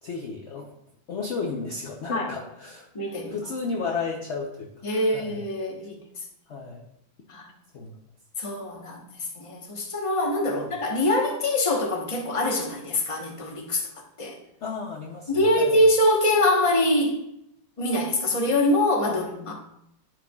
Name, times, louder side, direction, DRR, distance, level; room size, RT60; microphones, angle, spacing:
voice 1, 0.0-0.7 1.1-2.9 3.2-5.5 6.5-6.8 7.7-7.9 10.5-10.7 14.6-15.8 19.0-19.2, left 4 dB, 55° left, 1 dB, 0.8 m, -33 dB
voice 2, 2.9-3.4 4.8-6.0 7.3-7.5 8.4-9.0 9.4-13.9 14.2-14.4 15.3-17.2 17.8-19.5, left 1 dB, 20° left, 0 dB, 0.9 m, -24 dB
13.5 x 4.7 x 2.4 m, 0.79 s
omnidirectional pair, 2.1 m